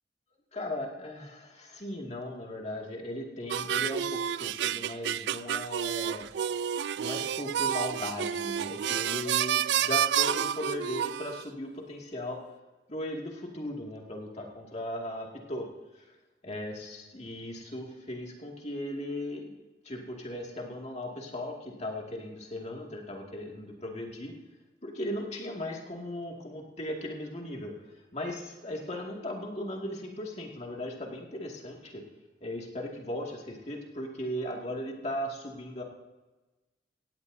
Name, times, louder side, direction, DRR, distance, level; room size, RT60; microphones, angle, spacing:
voice 1, 0.5-6.3 7.0-12.4 12.9-15.7 15.9-16.1 16.4-19.5 19.8-24.3 24.8-27.7 28.1-32.0 32.4-35.8, left 1 dB, 35° left, 0 dB, 2.3 m, -37 dB
sound 1, 3.5-11.4, right 9 dB, 70° right, 0.3 m, -30 dB
17.0 x 16.5 x 2.7 m, 1.1 s
head